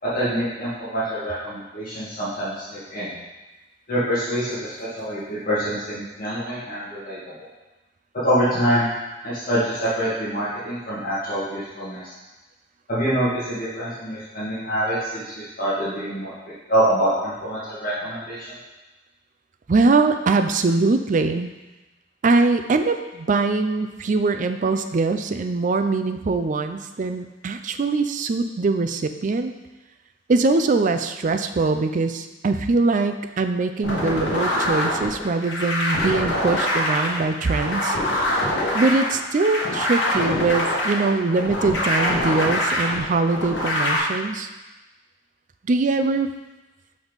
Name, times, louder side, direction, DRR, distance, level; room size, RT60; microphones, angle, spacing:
voice 1, 0.0-3.1 3.9-7.5 8.2-8.9 9.2-12.1 12.9-16.3 16.7-18.5, equal, 50° left, -10 dB, 2.0 m, -25 dB
voice 2, 19.7-21.5 22.2-29.5 30.3-38.0 38.7-44.5 45.6-46.3, right 3 dB, 45° right, 8 dB, 0.4 m, -22 dB
sound 1, 33.8-44.0, left 1 dB, 80° left, 1.5 m, -24 dB
6.1 x 5.3 x 4.0 m, 1.1 s
head